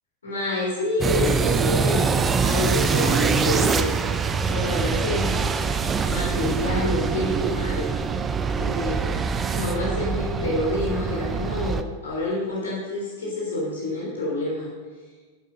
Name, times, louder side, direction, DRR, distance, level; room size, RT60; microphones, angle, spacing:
voice 1, 0.2-2.1 2.4-3.9 4.5-5.5 6.1-7.9 8.6-9.1 9.5-14.7, left 2 dB, 70° left, -4 dB, 3.3 m, -28 dB
sound 1, 1.0-11.8, right 5 dB, 20° right, 0.6 m, -24 dB
11.0 x 8.4 x 5.1 m, 1.4 s
figure-of-eight pair, 90°, 0 cm